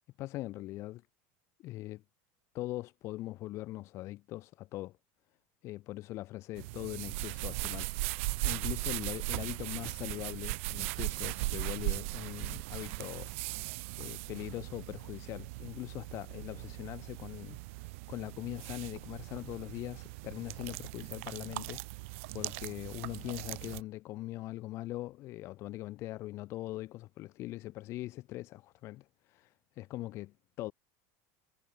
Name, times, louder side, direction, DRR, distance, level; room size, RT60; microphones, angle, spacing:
voice 1, 0.2-1.0 1.6-2.0 2.5-5.0 5.6-13.3 14.0-21.8 22.3-30.7, left 17 dB, 35° left, 0.5 m, -41 dB
sound 1, 6.6-23.8, right 25 dB, 65° right, 0.3 m, -38 dB
supercardioid pair, 160°, 8 cm